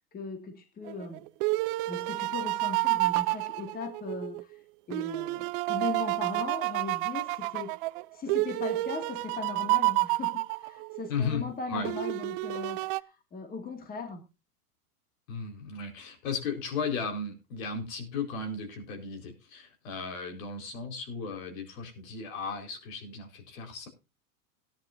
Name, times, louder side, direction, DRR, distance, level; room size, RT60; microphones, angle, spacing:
voice 1, 0.1-1.3 1.9-4.6 4.9-7.7 8.1-14.2, left 4 dB, 20° left, 6 dB, 2.0 m, -38 dB
sound 1, 0.9-4.4 4.9-11.1 11.8-13.0, right 21 dB, 40° right, 0.5 m, -30 dB
voice 2, 11.1-11.4 11.7-11.9 15.3-23.9, left 4 dB, 60° left, 6 dB, 4.5 m, -35 dB
18.0 x 10.5 x 2.6 m, 0.28 s
supercardioid pair, 135°, 44 cm